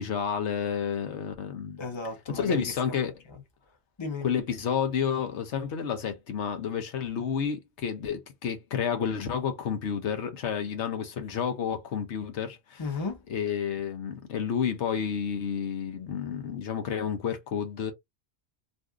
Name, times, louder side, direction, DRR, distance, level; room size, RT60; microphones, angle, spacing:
voice 1, 0.0-1.8 2.3-3.1 4.2-12.8 13.3-17.9, left 7 dB, 85° left, 1.1 m, -30 dB
voice 2, 1.8-3.0 4.0-4.3 12.8-13.2, left 3 dB, 30° left, 0.8 m, -34 dB
2.6 x 2.6 x 3.4 m
omnidirectional pair, 1.1 m